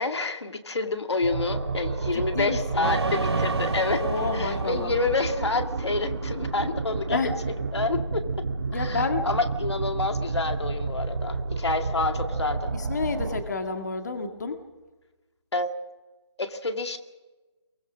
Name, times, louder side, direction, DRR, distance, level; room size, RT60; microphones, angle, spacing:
voice 1, 0.0-4.1 4.3-7.2 7.7-8.2 8.7-12.7 15.5-15.8 16.4-17.0, left 3 dB, 70° left, 7 dB, 2.1 m, -28 dB
sound 1, 1.2-13.4, right 3 dB, 40° right, 2.3 m, -30 dB
voice 2, 2.1-2.9 4.0-4.9 7.1-7.4 8.7-9.3 12.7-14.6, left 4 dB, 40° left, 6 dB, 2.0 m, -30 dB
sound 2, 2.8-6.2, right 3 dB, 65° right, 2.8 m, -31 dB
23.0 x 22.5 x 6.3 m, 1.2 s
hypercardioid pair, 175°, 15 cm